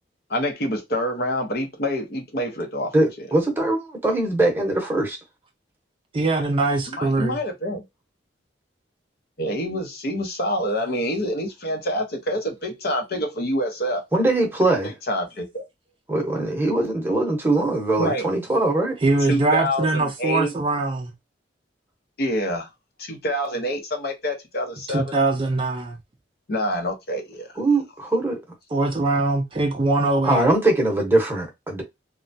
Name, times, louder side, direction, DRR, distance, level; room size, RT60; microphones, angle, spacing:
voice 1, 0.3-3.3 6.9-7.8 9.4-14.0 15.1-15.6 18.0-18.3 19.3-20.5 22.2-22.7 23.0-25.1 26.5-27.5, equal, 55° left, 0.7 m, -26 dB
voice 2, 2.9-5.2 14.1-14.9 16.1-19.0 27.6-28.4 30.2-31.8, right 2 dB, 10° right, 0.9 m, -21 dB
voice 3, 6.1-7.4 19.0-21.1 24.9-26.0 28.7-30.5, right 2 dB, 30° right, 0.4 m, -22 dB
3.2 x 2.2 x 2.6 m
head